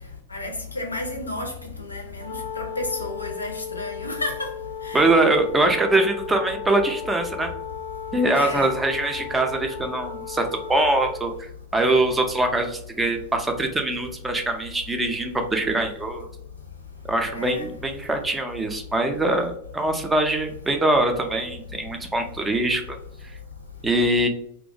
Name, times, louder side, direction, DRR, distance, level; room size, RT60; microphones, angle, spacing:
voice 1, 0.3-1.5 1.8-4.5 4.9-5.0 8.3-8.7 17.3-17.7, left 2 dB, 80° left, 0.4 m, -31 dB
Wind instrument woodwind instrument, 2.1-11.4, left 7 dB, 85° right, 1.0 m, -36 dB
voice 2, 4.9-7.5 8.1-11.5 11.7-16.3 17.1-22.8 23.8-24.3, right 2 dB, 10° right, 0.4 m, -23 dB
2.3 x 2.1 x 2.6 m
figure-of-eight pair, 90°, 0 cm